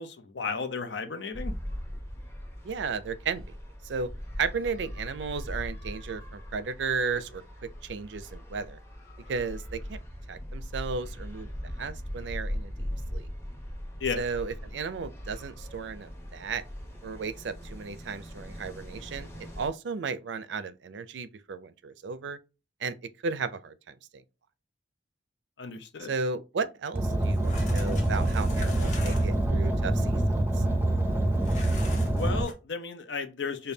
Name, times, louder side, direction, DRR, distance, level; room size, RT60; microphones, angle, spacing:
voice 1, 0.0-1.5 14.0-14.2 25.6-26.1 32.1-33.7, left 5 dB, 80° left, 0.7 m, -34 dB
sound 1, 1.3-19.7, equal, 15° left, 0.8 m, -40 dB
voice 2, 2.6-3.4 3.8-4.1 4.4-7.4 7.8-8.8 9.3-10.0 10.3-11.5 11.8-13.3 14.2-16.6 17.0-19.3 19.6-22.4 22.8-23.0 23.2-23.9 26.1-30.2 30.6-30.7, right 5 dB, 80° right, 0.4 m, -34 dB
Car, 26.9-32.4, right 1 dB, 10° right, 0.4 m, -25 dB
sound 2, 27.2-29.4 31.4-32.5, left 3 dB, 40° left, 0.8 m, -44 dB
5.2 x 2.2 x 2.7 m
head